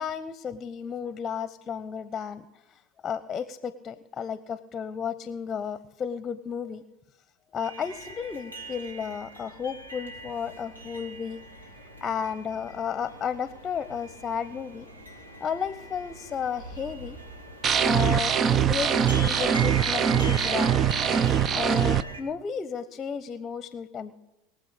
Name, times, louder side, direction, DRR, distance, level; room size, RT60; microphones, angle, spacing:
voice 1, 0.0-2.4 2.7-6.8 7.5-11.4 12.0-14.9 15.4-17.2 17.8-20.8 21.5-24.1, left 7 dB, 30° left, 14 dB, 0.8 m, -33 dB
sound 1, 7.6-22.2, right 2 dB, 90° right, 2.5 m, -41 dB
sound 2, 17.6-22.0, right 8 dB, 35° right, 0.6 m, -23 dB
22.5 x 7.7 x 5.0 m, 0.97 s
hypercardioid pair, 80°, 0 cm